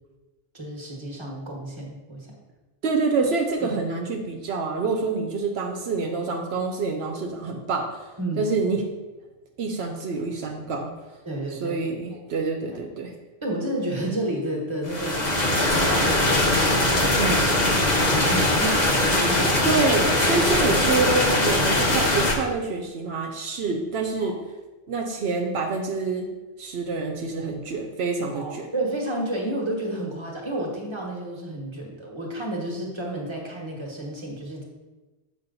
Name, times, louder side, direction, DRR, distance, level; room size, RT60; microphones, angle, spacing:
voice 1, 0.5-2.4 3.6-3.7 8.2-8.5 11.2-11.8 12.1-12.2 12.7-12.8 13.4-16.9 17.2-19.7 20.5-20.9 21.5-21.7 24.2-24.3 28.3-34.6, right 1 dB, 25° right, -2 dB, 1.5 m, -31 dB
voice 2, 2.8-7.9 8.4-8.8 9.6-10.9 11.5-13.1 17.1-17.5 19.7-24.4 24.9-26.3 26.6-28.7, right 4 dB, 80° right, 3 dB, 1.0 m, -27 dB
sound 1, 14.8-22.3, left 1 dB, 45° left, 1.0 m, -21 dB
7.1 x 5.1 x 4.0 m, 1.2 s
omnidirectional pair, 1.1 m